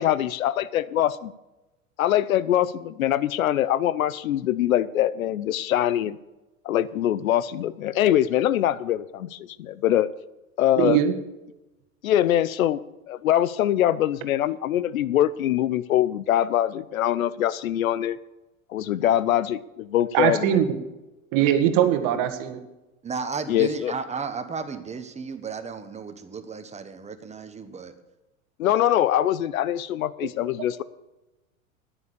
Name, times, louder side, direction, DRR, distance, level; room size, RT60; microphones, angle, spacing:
voice 1, 0.0-1.3 2.0-6.2 6.6-10.1 10.6-11.0 12.0-12.8 13.1-18.2 18.7-20.6 23.5-23.9 28.6-30.8, left 12 dB, 75° left, 18 dB, 0.7 m, -23 dB
voice 2, 10.8-11.1 20.1-20.8 21.3-22.6, right 10 dB, 50° right, 7 dB, 1.6 m, -21 dB
voice 3, 23.0-27.9, right 5 dB, 15° right, 9 dB, 1.2 m, -34 dB
10.0 x 9.4 x 6.8 m, 1.0 s
hypercardioid pair, 90°, 42 cm